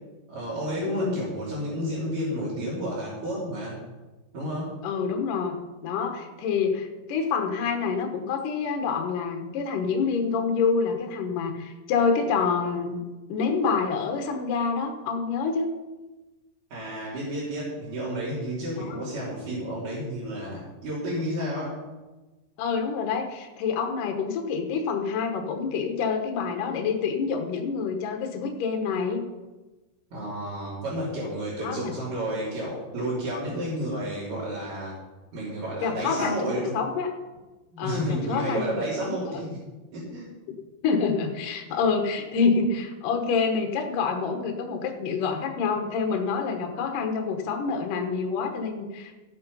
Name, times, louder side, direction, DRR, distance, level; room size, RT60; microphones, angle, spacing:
voice 1, 0.3-3.8 4.3-4.8 16.7-21.8 30.1-35.0 35.3-36.8 37.7-39.6 39.9-40.3 41.7-41.8, right 1 dB, 45° right, -9 dB, 4.5 m, -31 dB
voice 2, 0.8-1.2 4.8-5.6 5.8-13.0 13.3-15.7 18.8-19.0 22.6-29.2 31.6-31.9 35.8-37.1 37.8-38.7 39.0-39.1 40.8-49.1, left 5 dB, 80° left, 4 dB, 1.9 m, -27 dB
14.5 x 8.7 x 5.5 m, 1.2 s
omnidirectional pair, 5.6 m